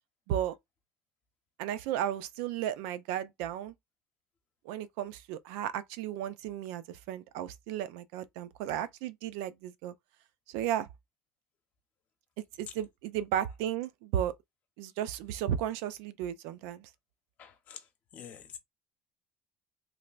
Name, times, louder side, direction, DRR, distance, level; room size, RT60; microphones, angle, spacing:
voice 1, 1.6-3.7 4.6-9.9 10.5-10.9 12.6-14.3 14.8-16.9, right 10 dB, 85° right, 0.4 m, -34 dB
voice 2, 17.4-18.6, left 9 dB, 45° left, 1.0 m, -47 dB
3.2 x 3.0 x 2.4 m
cardioid pair, 135°, 4 cm